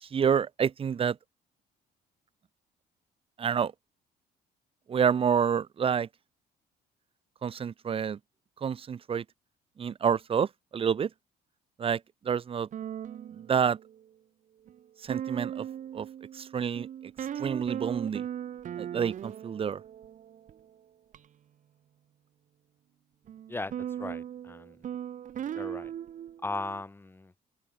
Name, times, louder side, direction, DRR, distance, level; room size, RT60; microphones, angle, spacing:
voice 1, 0.0-1.2 3.4-3.7 4.9-6.1 7.4-8.2 8.6-9.2 9.8-11.1 11.8-12.7 13.5-13.8 15.0-15.6 15.9-16.1 16.3-16.9 17.4-18.2 18.8-19.8, right 7 dB, 35° right, 0.8 m, -28 dB
sound 1, 12.7-14.0 14.7-14.8 15.1-20.6 21.1-21.2 23.3-26.8, right 10 dB, 50° right, 1.2 m, -38 dB
voice 2, 23.5-24.8 25.5-25.9 26.4-27.3, left 2 dB, 15° left, 1.5 m, -37 dB
open air
cardioid pair, 110°, 17 cm